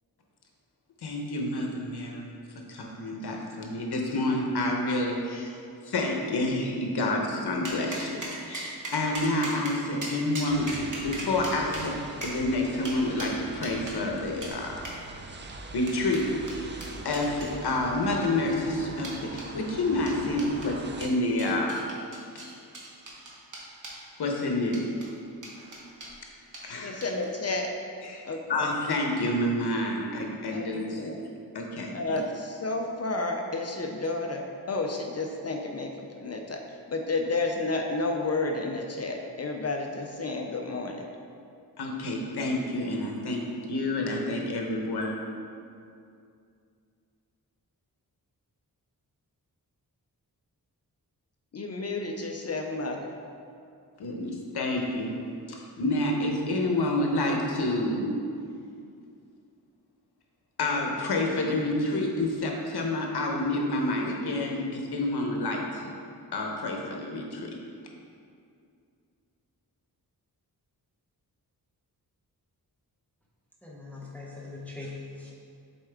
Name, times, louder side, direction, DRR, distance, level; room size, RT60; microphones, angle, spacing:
voice 1, 1.0-2.3 2.7-5.6 5.8-10.7 11.0-14.8 15.7-16.7 17.0-21.8 22.3-22.4 24.2-24.8 26.6-26.9 28.0-31.1 31.5-32.2 41.8-43.4 43.7-45.1 54.0-55.2 55.5-58.2 60.6-65.9 66.3-67.5, left 2 dB, 75° left, 0 dB, 0.9 m, -28 dB
sound 1, 7.6-14.0 14.4-14.6 14.8-15.0 15.5-17.5 18.0-18.5 19.0-19.5 20.1-20.7 21.0-24.0 24.7-25.1 25.4-26.1 26.5-26.7 27.0-27.3, right 1 dB, 50° right, 1.0 m, -39 dB
sound 2, 10.5-21.1, right 3 dB, 30° right, 0.4 m, -43 dB
voice 2, 26.8-27.7 28.2-28.7 30.5-30.7 31.0-31.2 31.9-41.1 51.5-53.1, left 2 dB, 40° left, 3 dB, 0.4 m, -31 dB
voice 3, 73.6-75.3, left 3 dB, 5° left, -5 dB, 0.7 m, -41 dB
7.1 x 4.3 x 3.4 m, 2.4 s
wide cardioid pair, 155°, 39 cm